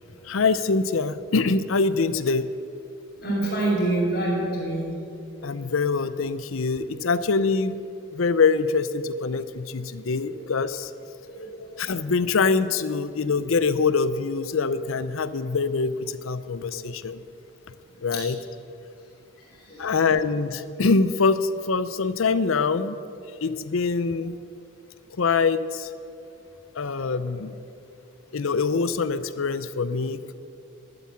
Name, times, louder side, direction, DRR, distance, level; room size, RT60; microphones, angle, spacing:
voice 1, 0.2-2.5 5.4-7.8 8.1-10.9 11.8-17.2 18.0-18.4 19.8-23.0 23.4-24.4 25.2-25.9 26.8-27.5 28.3-30.3, left 4 dB, 80° left, 14 dB, 0.6 m, -24 dB
voice 2, 3.2-4.9 5.4-5.5 11.3-11.7 19.7-19.8, right 2 dB, 50° left, -5 dB, 3.5 m, -26 dB
12.0 x 9.3 x 8.7 m, 2.6 s
head